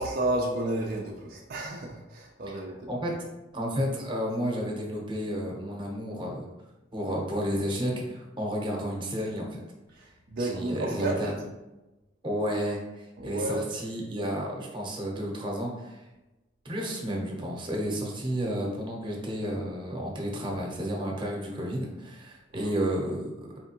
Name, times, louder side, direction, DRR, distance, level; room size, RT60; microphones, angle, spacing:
voice 1, 0.0-2.7 10.0-11.3 13.2-13.7 22.5-22.7, right 2 dB, 50° right, -1 dB, 0.4 m, -31 dB
voice 2, 3.5-6.4 6.9-9.6 10.4-11.3 12.2-16.0 16.6-23.3, equal, 25° right, -1 dB, 0.9 m, -31 dB
4.2 x 3.3 x 2.9 m, 1.1 s
head